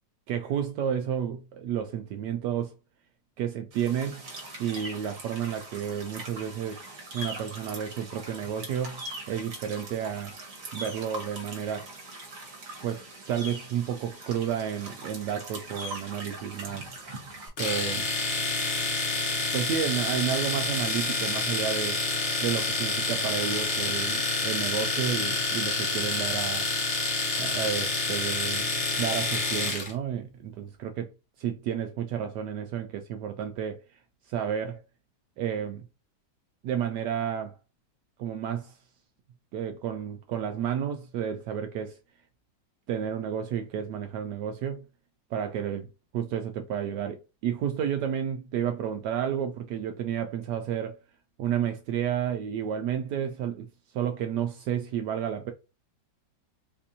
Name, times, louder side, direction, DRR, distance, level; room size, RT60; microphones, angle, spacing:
voice 1, 0.3-2.7 3.4-4.2 4.6-6.8 7.1-10.3 10.7-11.9 12.8-13.0 13.3-16.9 17.6-18.1 19.5-22.0 22.4-26.6 27.4-31.1 31.4-33.8 34.3-34.8 35.4-35.8 36.6-37.6 38.2-38.7 39.5-42.0 42.9-44.8 45.3-45.9 46.1-51.0 51.4-53.7 53.9-55.5, right 9 dB, 75° right, 1.1 m, -31 dB
sound 1, 3.7-17.5, right 2 dB, 50° right, 1.4 m, -42 dB
Domestic sounds home sounds, 17.6-29.9, left 3 dB, 45° left, 1.2 m, -28 dB
4.2 x 2.5 x 2.7 m
omnidirectional pair, 1.9 m